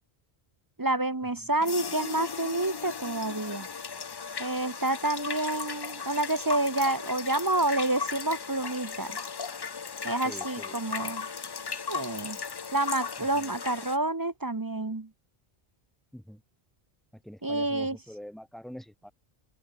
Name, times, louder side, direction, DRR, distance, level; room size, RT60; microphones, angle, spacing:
voice 1, 0.8-3.7 4.4-9.2 10.0-11.3 11.9-12.4 12.7-15.1 17.4-18.0, right 2 dB, 20° right, 0.7 m, -29 dB
sound 1, 1.6-14.0, left 5 dB, 40° left, 0.3 m, -36 dB
voice 2, 10.2-11.2 13.2-13.5 16.1-16.4 17.1-19.1, equal, ahead, 2.0 m, -45 dB
open air
omnidirectional pair, 1.1 m